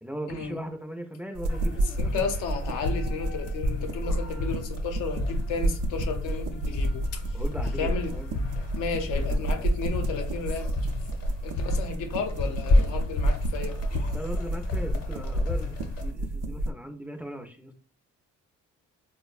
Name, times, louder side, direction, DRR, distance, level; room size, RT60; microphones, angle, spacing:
voice 1, 0.0-2.3 7.3-8.4 9.0-9.7 14.1-17.7, equal, 5° right, 4 dB, 0.4 m, -39 dB
sound 1, 1.3-16.7, right 1 dB, 85° right, 0.5 m, -30 dB
sound 2, 1.5-16.1, left 2 dB, 50° left, 0.8 m, -32 dB
voice 2, 2.0-7.4 7.8-8.1 8.7-10.8 11.4-13.8, left 5 dB, 90° left, 5 dB, 0.7 m, -33 dB
4.0 x 2.1 x 2.3 m, 0.39 s
cardioid pair, 90°, 30 cm